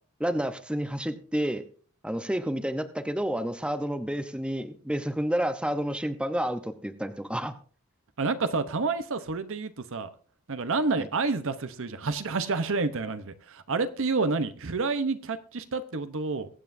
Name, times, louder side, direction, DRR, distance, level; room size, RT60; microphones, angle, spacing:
voice 1, 0.2-1.6 2.0-7.5 11.0-11.1, equal, 5° right, 9 dB, 0.7 m, -30 dB
voice 2, 8.2-10.1 10.5-16.5, right 3 dB, 60° right, 11 dB, 0.9 m, -29 dB
22.5 x 8.1 x 2.6 m, 0.43 s
head